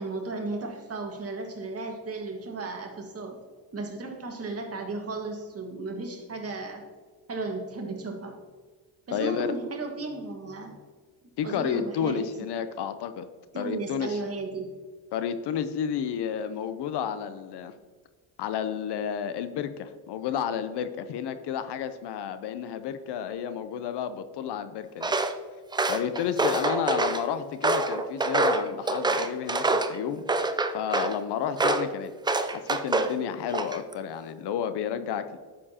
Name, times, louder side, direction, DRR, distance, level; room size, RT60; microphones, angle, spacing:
voice 1, 0.0-3.4 3.7-6.8 7.3-8.4 9.1-10.7 11.4-12.2 13.5-14.7, right 3 dB, 30° right, 3 dB, 1.6 m, -34 dB
voice 2, 9.1-9.5 11.4-13.3 13.6-14.2 15.1-17.7 18.4-25.1 25.8-32.1 32.4-35.4, left 8 dB, 60° left, 11 dB, 0.7 m, -31 dB
Walk footsteps, 25.0-25.3 25.7-27.2 27.6-29.9 30.3-31.2 31.6-31.9 32.3-33.1 33.5-33.9, right 3 dB, 10° right, 0.4 m, -26 dB
10.0 x 7.0 x 2.8 m, 1.5 s
cardioid pair, 95°, 46 cm